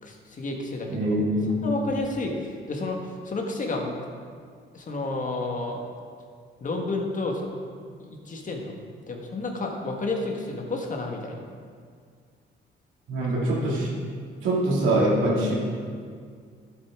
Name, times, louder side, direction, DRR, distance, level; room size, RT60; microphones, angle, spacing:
voice 1, 0.0-1.1 1.6-3.9 4.7-5.8 6.6-7.5 8.0-8.7 9.1-11.4 13.2-13.3, left 2 dB, 40° left, 1 dB, 1.5 m, -31 dB
voice 2, 0.9-1.5 13.1-13.9 14.4-15.5, right 1 dB, 80° right, -4 dB, 2.5 m, -23 dB
11.5 x 7.8 x 3.7 m, 2.1 s
cardioid pair, 90°, 20 cm